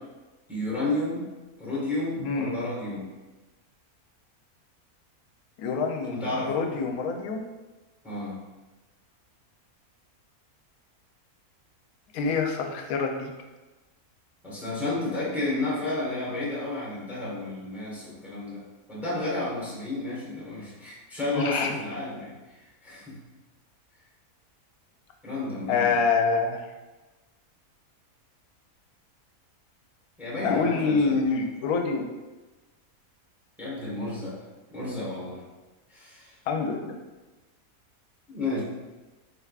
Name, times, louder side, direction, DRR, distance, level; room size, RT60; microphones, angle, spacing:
voice 1, 0.5-1.3 1.6-3.1 6.1-6.6 8.0-8.4 14.4-18.6 18.9-22.3 22.8-23.2 25.2-25.9 30.2-31.2 33.6-34.4 34.7-35.4 35.9-36.3 38.3-38.6, left 2 dB, ahead, -6 dB, 1.2 m, -31 dB
voice 2, 2.2-2.5 5.6-7.5 12.1-13.3 21.4-21.7 25.7-26.6 30.4-32.1 36.5-36.9, left 4 dB, 80° left, 3 dB, 1.1 m, -26 dB
4.3 x 3.4 x 2.4 m, 1.2 s
omnidirectional pair, 1.6 m